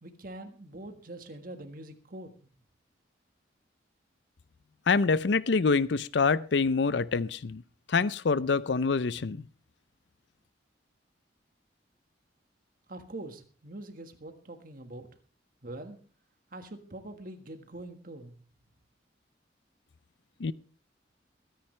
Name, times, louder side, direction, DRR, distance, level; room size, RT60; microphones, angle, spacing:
voice 1, 0.0-2.5 12.9-15.1 15.6-16.0 16.5-18.3, right 1 dB, 50° right, 1.5 m, -44 dB
voice 2, 4.9-7.6 7.9-9.4 20.4-20.5, left 4 dB, 70° left, 0.5 m, -26 dB
21.5 x 10.5 x 3.3 m
head